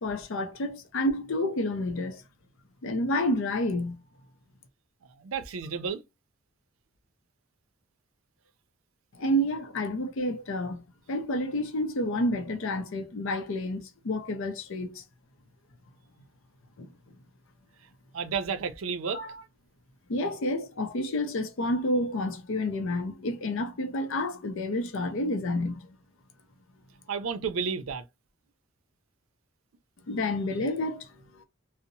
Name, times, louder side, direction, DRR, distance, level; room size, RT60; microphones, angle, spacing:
voice 1, 0.0-2.2 2.8-4.0 9.2-10.8 11.1-15.0 16.8-16.9 19.1-19.4 20.1-26.0 30.1-31.1 31.4-31.5, left 1 dB, 65° left, 0.5 m, -29 dB
voice 2, 5.2-6.0 18.1-19.2 27.1-28.0, right 5 dB, 70° right, 0.5 m, -31 dB
2.7 x 2.0 x 2.6 m
head